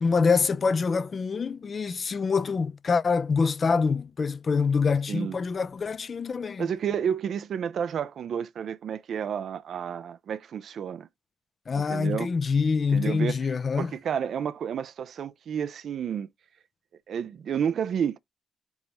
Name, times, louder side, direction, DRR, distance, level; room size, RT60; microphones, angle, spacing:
voice 1, 0.0-6.7 11.7-13.9, left 5 dB, 50° left, 0.7 m, -25 dB
voice 2, 6.6-11.1 11.7-12.3 12.9-13.4 13.8-16.3 17.1-18.2, right 8 dB, 70° right, 0.5 m, -30 dB
4.8 x 4.0 x 5.0 m
supercardioid pair, 55°, 0 cm